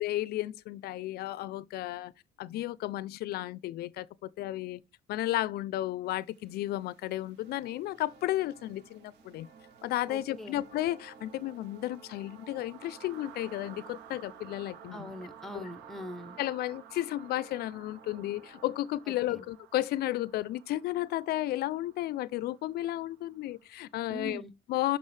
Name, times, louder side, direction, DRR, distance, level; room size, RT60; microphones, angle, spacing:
voice 1, 0.0-2.1 2.4-4.8 5.1-9.5 9.8-15.1 15.5-15.7 16.4-24.4 24.7-25.0, left 15 dB, 70° left, 0.4 m, -33 dB
sound 1, 6.2-24.0, right 9 dB, 85° right, 0.7 m, -54 dB
sound 2, 7.4-18.8, right 4 dB, 60° right, 1.8 m, -58 dB
voice 2, 10.1-10.6 14.9-16.4 19.1-19.4 24.1-24.5, equal, ahead, 0.8 m, -42 dB
7.2 x 6.0 x 3.2 m
cardioid pair, 110°, 17 cm